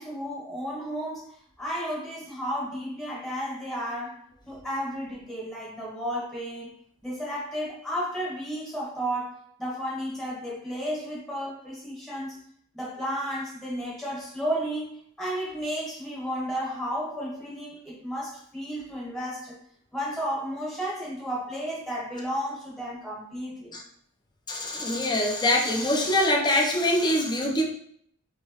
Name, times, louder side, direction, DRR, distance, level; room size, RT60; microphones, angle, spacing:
voice 1, 0.0-6.8 7.0-12.4 12.7-14.9 15.2-19.6 19.9-23.8, equal, ahead, -5 dB, 1.1 m, -33 dB
voice 2, 24.5-27.6, left 1 dB, 20° left, 0 dB, 0.5 m, -24 dB
2.9 x 2.7 x 2.9 m, 0.67 s
head